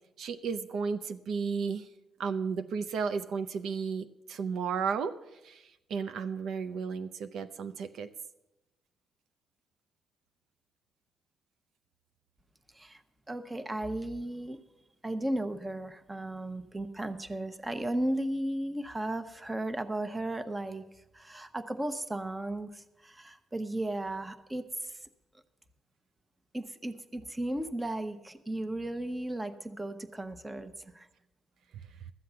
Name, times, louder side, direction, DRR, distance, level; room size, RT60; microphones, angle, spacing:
voice 1, 0.2-1.9 2.2-5.2 5.4-8.1, right 5 dB, 70° right, 10 dB, 0.6 m, -33 dB
voice 2, 13.3-14.6 15.0-20.8 21.1-25.0 26.5-31.1, right 1 dB, 15° right, 10 dB, 0.8 m, -35 dB
13.0 x 7.6 x 6.8 m, 0.97 s
cardioid pair, 90°, 0 cm